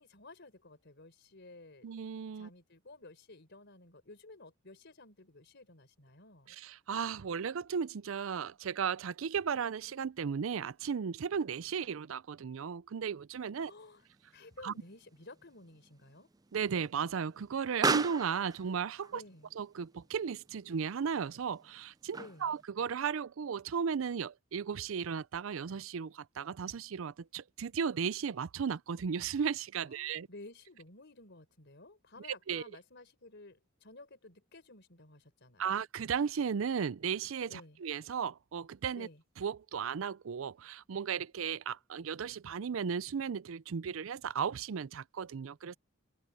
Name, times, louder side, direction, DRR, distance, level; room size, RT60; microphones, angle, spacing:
voice 1, 0.0-1.9 2.3-6.6 13.5-14.1 14.3-16.3 19.1-19.5 22.1-22.6 29.8-35.8 37.5-37.8 38.9-39.2, left 2 dB, 60° left, 4.3 m, -54 dB
voice 2, 1.8-2.5 6.6-13.7 14.6-14.7 16.5-19.2 19.6-30.3 32.5-32.6 35.6-39.1 39.4-45.8, right 6 dB, 75° right, 0.5 m, -35 dB
Explosion, 13.6-22.6, right 4 dB, 20° right, 0.4 m, -40 dB
head